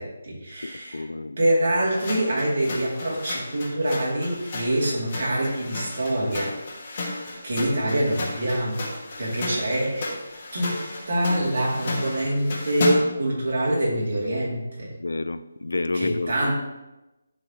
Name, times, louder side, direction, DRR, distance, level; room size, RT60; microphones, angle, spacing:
voice 1, 0.0-1.1 1.4-6.6 7.4-8.9 9.2-10.2 10.5-14.9 15.9-16.5, right 1 dB, 55° right, -4 dB, 2.3 m, -25 dB
voice 2, 0.6-1.4 15.0-16.5, left 2 dB, 90° left, 13 dB, 0.4 m, -29 dB
sound 1, 1.9-13.3, left 2 dB, 35° left, 1.3 m, -33 dB
10.5 x 4.0 x 2.9 m, 0.98 s
hypercardioid pair, 170°, 0 cm